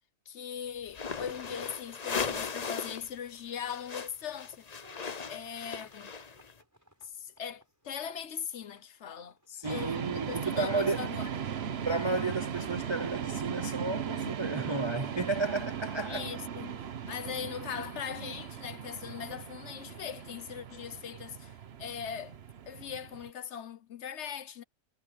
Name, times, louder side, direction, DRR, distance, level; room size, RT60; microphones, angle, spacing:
voice 1, 0.3-4.7 5.3-6.1 7.0-9.4 9.7-11.5 16.1-16.8 17.1-22.4 22.7-24.6, left 8 dB, 60° left, 1.1 m, -40 dB
sound 1, 0.9-3.1 3.4-6.5, left 5 dB, 35° left, 0.9 m, -37 dB
sound 2, 4.8-19.9 20.2-20.7 21.5-21.6 22.0-22.2, right 1 dB, 10° right, 7.4 m, -66 dB
voice 2, 9.5-11.0 11.8-16.3, right 3 dB, 35° right, 0.4 m, -32 dB
sound 3, 9.6-23.3, right 8 dB, 55° right, 1.1 m, -38 dB
omnidirectional pair, 1.4 m